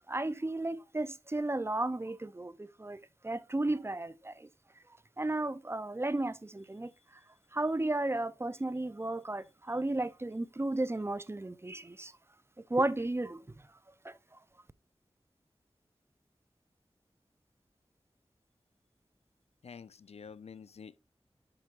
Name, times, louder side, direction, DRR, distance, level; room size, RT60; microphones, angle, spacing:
voice 1, 0.1-3.0 3.2-4.5 5.2-6.9 7.5-12.1 12.7-13.4 14.0-14.1, right 2 dB, 25° right, 0.4 m, -33 dB
voice 2, 19.6-21.0, left 6 dB, 75° left, 0.4 m, -48 dB
7.9 x 5.8 x 2.4 m
wide cardioid pair, 75°, 11 cm